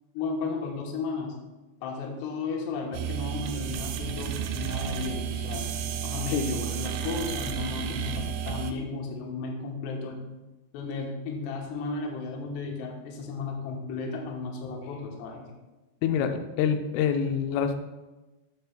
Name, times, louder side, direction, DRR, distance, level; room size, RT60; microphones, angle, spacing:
voice 1, 0.1-1.4 1.8-5.7 6.0-10.2 10.7-15.5, left 4 dB, 75° left, 0 dB, 2.8 m, -34 dB
sound 1, 2.9-8.7, right 8 dB, 80° right, 2.7 m, -32 dB
voice 2, 16.0-17.8, left 7 dB, 90° left, 7 dB, 3.1 m, -26 dB
11.0 x 6.7 x 2.2 m, 1.1 s
omnidirectional pair, 5.5 m